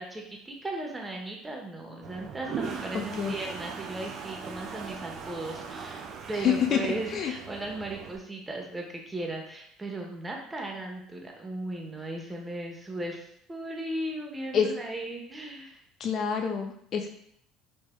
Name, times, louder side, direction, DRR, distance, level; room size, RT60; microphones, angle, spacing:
voice 1, 0.0-15.8, right 2 dB, 15° right, 1 dB, 1.0 m, -37 dB
Toilet flush, 2.0-8.2, right 5 dB, 50° right, 0.5 m, -39 dB
voice 2, 6.4-6.8 7.1-7.3 14.5-14.7 16.0-17.1, left 8 dB, 45° left, 5 dB, 0.4 m, -26 dB
5.0 x 3.3 x 2.2 m, 0.71 s
figure-of-eight pair, 60°, 0 cm